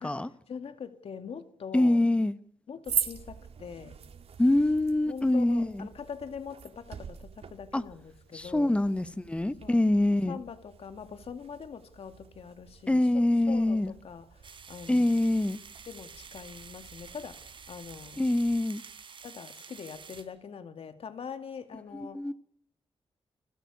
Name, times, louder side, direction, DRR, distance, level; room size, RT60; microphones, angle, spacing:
voice 1, 0.0-2.0 2.7-4.0 5.1-8.8 9.6-9.8 10.3-15.2 15.9-18.2 19.2-22.2, left 6 dB, 70° left, 2.3 m, -43 dB
voice 2, 1.7-2.4 4.4-5.9 7.7-7.8 8.3-10.4 12.9-13.9 14.9-15.6 18.2-18.8 21.9-22.3, left 1 dB, 10° left, 1.2 m, -25 dB
sound 1, 2.8-18.6, right 7 dB, 85° right, 3.6 m, -43 dB
sound 2, 14.4-20.2, right 6 dB, 55° right, 4.2 m, -49 dB
29.5 x 20.5 x 8.5 m
wide cardioid pair, 170°, 10 cm